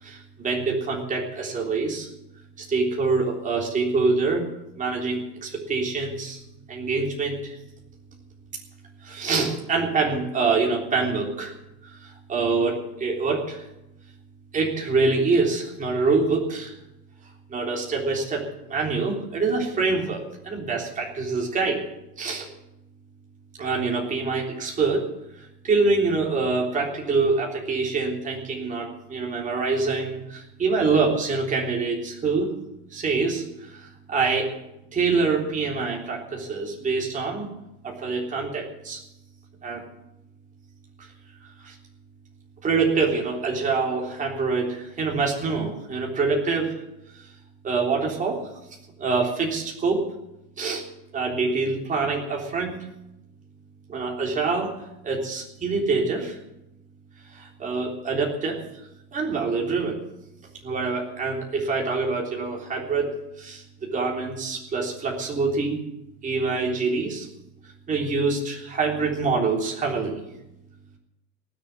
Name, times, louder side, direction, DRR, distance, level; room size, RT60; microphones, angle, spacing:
voice 1, 0.0-2.1 2.6-4.5 4.8-6.4 6.7-7.6 9.0-11.5 11.8-13.7 14.5-16.8 17.5-18.4 18.7-21.8 22.2-22.5 23.6-25.1 25.6-32.5 32.9-34.5 34.9-37.5 37.8-39.0 39.6-39.8 41.0-41.1 41.6-41.8 42.6-46.7 47.6-48.4 49.0-50.0 50.6-50.8 51.1-52.8 53.9-54.7 55.0-56.4 57.3-58.6 59.1-60.0 60.6-65.8 66.2-67.3 67.9-70.2, right 4 dB, 20° right, -1 dB, 3.5 m, -25 dB
18.0 x 7.0 x 9.7 m, 0.90 s
supercardioid pair, 140°, 36 cm